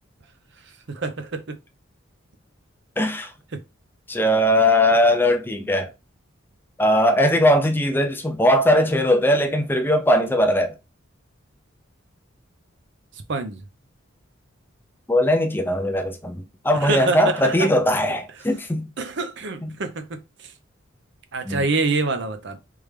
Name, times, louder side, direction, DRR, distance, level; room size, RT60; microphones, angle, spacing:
voice 1, 0.9-1.6 13.3-13.6 16.7-17.7 18.1-18.2 19.0-20.0 20.4-20.5 21.3-22.6, right 3 dB, 60° right, 0.7 m, -26 dB
voice 2, 3.0-3.3 4.1-5.9 6.8-10.8 15.1-18.9 19.6-19.8 21.5-21.6, left 1 dB, 10° left, 0.5 m, -19 dB
3.5 x 3.2 x 3.3 m
head